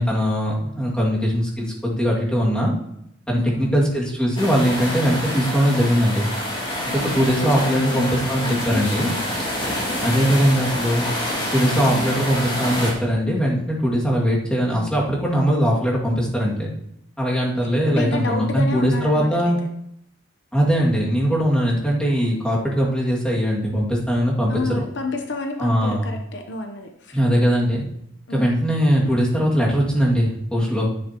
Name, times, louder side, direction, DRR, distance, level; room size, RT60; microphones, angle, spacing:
voice 1, 0.0-2.7 3.3-6.3 6.8-9.1 10.0-11.1 11.5-16.7 17.2-19.6 20.5-24.8 25.6-26.1 27.1-27.8 28.3-30.9, equal, 5° left, -5 dB, 2.3 m, -20 dB
voice 2, 3.3-3.7 7.1-9.3 9.6-10.0 11.7-12.2 17.4-19.5 24.5-27.2 28.3-28.7, left 3 dB, 60° left, 4 dB, 0.9 m, -30 dB
sound 1, 4.4-12.9, equal, 25° left, 2.9 m, -27 dB
11.0 x 9.5 x 3.0 m, 0.75 s
head